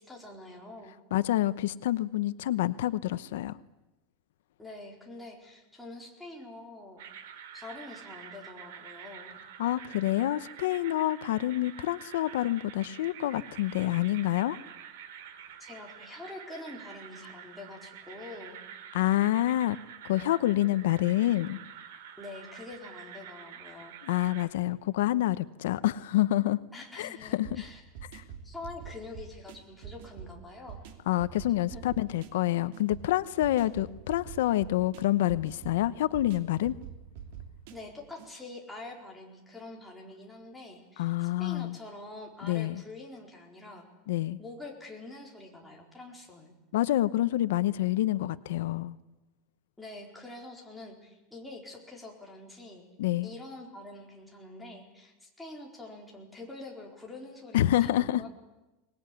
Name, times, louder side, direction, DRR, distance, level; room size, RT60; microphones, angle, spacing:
voice 1, 0.0-1.0 4.6-7.0 7.5-9.3 15.6-18.6 22.2-24.2 26.7-27.8 28.4-30.9 31.7-31.9 37.7-43.9 44.4-46.5 49.8-52.8 53.2-58.3, left 2 dB, 5° left, -2 dB, 4.3 m, -45 dB
voice 2, 1.1-3.6 9.6-14.6 18.9-19.8 20.0-21.6 24.0-26.6 27.0-27.6 28.1-28.2 31.1-36.7 41.0-41.8 42.4-42.8 44.1-44.4 46.7-49.0 53.0-53.3 57.5-58.2, left 14 dB, 85° left, 14 dB, 0.8 m, -27 dB
sound 1, 7.0-24.5, right 9 dB, 80° right, 3.4 m, -48 dB
sound 2, 27.4-38.3, right 7 dB, 60° right, 3.2 m, -46 dB
24.0 x 20.5 x 9.9 m, 1.0 s
supercardioid pair, 165°, 0 cm